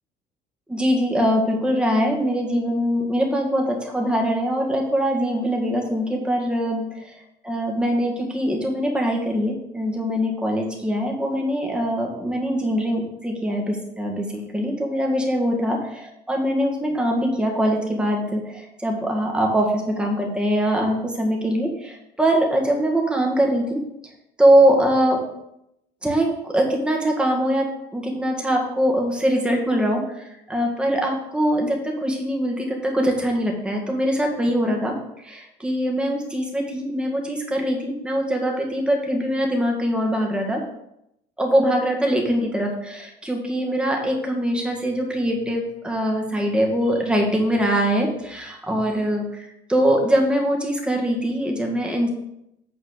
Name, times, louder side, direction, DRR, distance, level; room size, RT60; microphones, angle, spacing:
voice 1, 0.7-7.1 7.4-16.0 16.3-23.8 24.4-25.2 26.0-34.9 35.6-40.6 41.4-52.1, equal, 5° right, 0 dB, 1.7 m, -22 dB
8.6 x 4.4 x 6.5 m, 0.81 s
cardioid pair, 150°, 17 cm